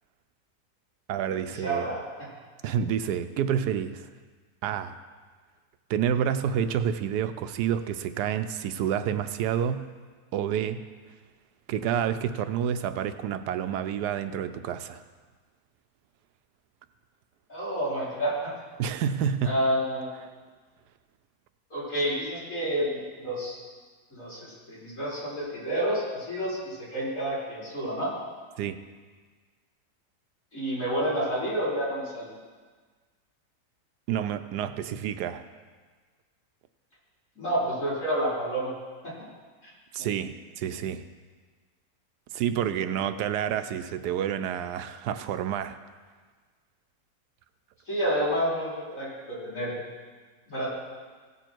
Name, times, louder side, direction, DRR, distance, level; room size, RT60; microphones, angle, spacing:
voice 1, 1.1-1.9 2.6-4.1 4.6-5.0 5.9-9.9 10.3-10.8 11.7-15.0 18.8-19.6 28.6-28.8 34.1-35.4 39.9-41.0 42.3-45.8, right 9 dB, 90° right, 10 dB, 1.2 m, -29 dB
voice 2, 1.6-2.3 17.5-18.3 19.4-20.2 21.7-23.5 24.1-28.1 30.5-32.3 37.4-38.7 39.0-39.1 47.9-49.7 50.5-50.7, right 1 dB, 50° left, -9 dB, 4.8 m, -29 dB
17.0 x 7.0 x 4.5 m, 1.5 s
omnidirectional pair, 1.7 m